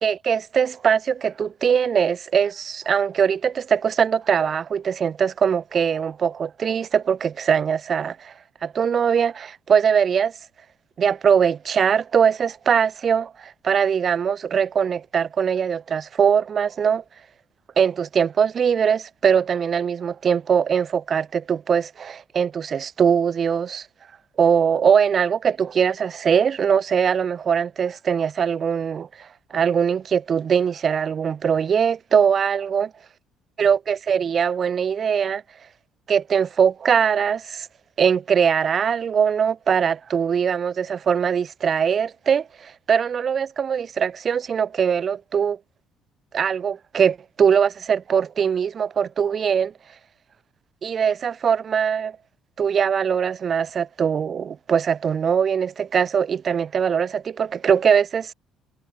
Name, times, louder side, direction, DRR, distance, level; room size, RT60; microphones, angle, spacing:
voice 1, 0.0-8.3 8.6-10.4 11.0-17.0 17.8-23.9 24.4-32.9 33.6-35.4 36.1-37.7 38.0-45.6 46.3-49.7 50.8-52.2 52.6-58.3, right 7 dB, 40° right, 1.6 m, -21 dB
figure-of-eight pair, 50°, 0 cm